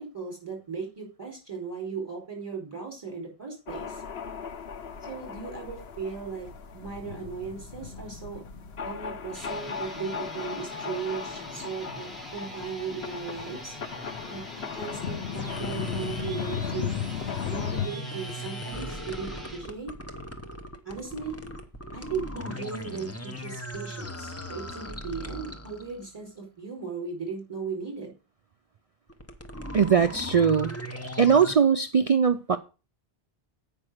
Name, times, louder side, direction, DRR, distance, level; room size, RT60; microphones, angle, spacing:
voice 1, 0.0-4.0 5.1-6.5 6.7-8.4 8.8-13.7 14.3-14.4 14.7-16.9 17.5-19.9 20.8-21.4 21.9-28.1, right 5 dB, 25° right, 4.5 m, -37 dB
sound 1, 3.7-17.9, left 7 dB, 75° left, 1.1 m, -36 dB
sound 2, 9.3-19.6, equal, ahead, 1.9 m, -44 dB
sound 3, 15.3-26.1 29.1-31.5, left 1 dB, 15° left, 0.9 m, -39 dB
voice 2, 29.7-30.7 31.2-32.6, right 6 dB, 45° right, 0.5 m, -20 dB
8.8 x 5.4 x 6.4 m
omnidirectional pair, 1.0 m